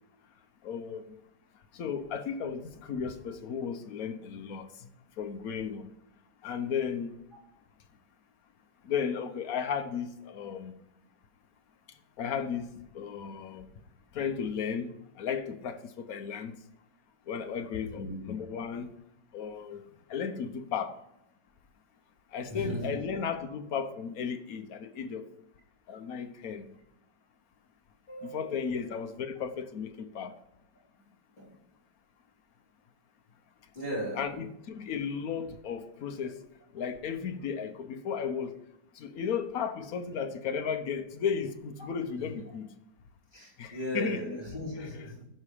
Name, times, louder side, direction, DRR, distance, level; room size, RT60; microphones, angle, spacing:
voice 1, 0.6-1.0 1.7-4.7 5.2-5.9 6.4-7.1 8.8-10.7 12.2-13.6 14.1-16.6 17.3-18.9 19.3-19.8 20.1-20.9 22.3-25.2 25.9-26.7 28.2-30.3 34.1-36.4 36.7-38.5 39.0-42.7 43.6-44.4, left 7 dB, 55° left, 1.2 m, -34 dB
voice 2, 17.9-18.3 22.5-23.0 28.1-28.8 31.4-31.5 33.7-34.3 42.2-42.3 43.3-45.3, equal, 25° left, 5.3 m, -37 dB
15.0 x 5.5 x 4.9 m
omnidirectional pair, 2.0 m